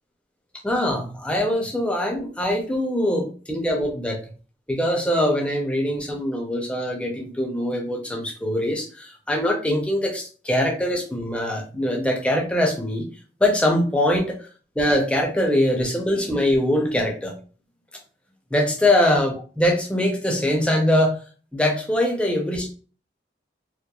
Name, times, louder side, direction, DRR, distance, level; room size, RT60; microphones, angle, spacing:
voice 1, 0.6-4.2 4.7-13.1 13.4-14.4 14.8-17.3 18.5-21.2 21.5-22.7, left 1 dB, 5° left, 0 dB, 0.4 m, -22 dB
2.9 x 2.1 x 2.2 m, 0.38 s
head